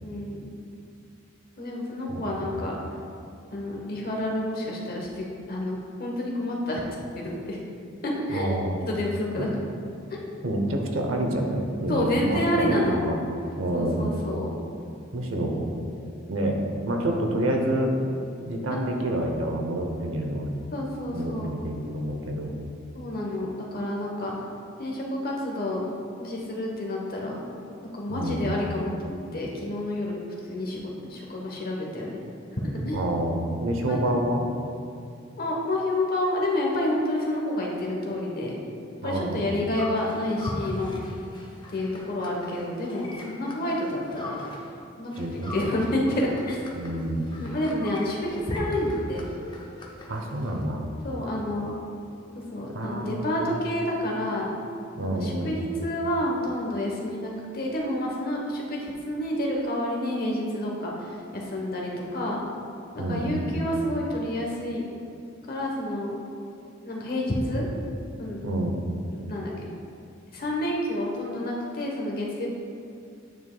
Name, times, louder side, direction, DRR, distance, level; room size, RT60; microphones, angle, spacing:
voice 1, 0.0-0.5 1.6-2.8 3.5-6.8 7.1-7.6 8.0-8.6 8.8-9.5 10.1-10.3 11.9-13.0 13.7-14.5 18.7-18.8 20.7-21.5 22.9-24.5 24.8-25.8 26.2-27.5 27.9-32.2 32.5-33.0 33.9-34.0 35.4-38.6 39.0-40.9 41.7-44.4 45.0-46.6 47.4-49.2 51.0-51.8 52.5-54.5 55.0-62.4 62.9-64.9 65.5-66.1 66.8-67.7 68.2-68.4 69.3-69.5 70.3-72.5, left 1 dB, 45° left, -2 dB, 1.0 m, -29 dB
voice 2, 2.1-2.6 8.3-8.8 9.4-9.5 10.4-13.2 13.6-14.1 15.1-15.7 16.3-16.6 16.8-18.1 18.5-20.5 21.1-22.6 28.1-28.5 32.9-34.5 39.0-39.4 45.2-45.7 46.7-47.3 50.1-50.8 52.7-53.4 55.0-55.5 63.0-63.5 68.4-68.8, right 1 dB, 75° right, 2 dB, 0.8 m, -28 dB
sound 1, 39.7-44.8 45.1-50.6, left 1 dB, 20° left, 0.6 m, -43 dB
9.3 x 5.4 x 2.2 m, 2.5 s
head